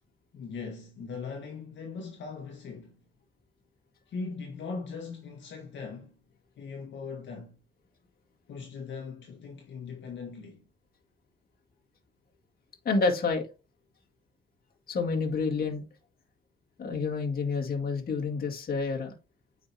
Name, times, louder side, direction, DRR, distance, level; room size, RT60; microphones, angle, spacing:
voice 1, 0.3-3.0 4.1-6.2 6.6-7.5 8.5-10.7, left 5 dB, 65° left, 1.5 m, -40 dB
voice 2, 12.9-13.5 14.9-15.8 16.8-19.1, left 4 dB, 50° left, 2.0 m, -28 dB
8.6 x 5.0 x 2.8 m
cardioid pair, 90°, 20 cm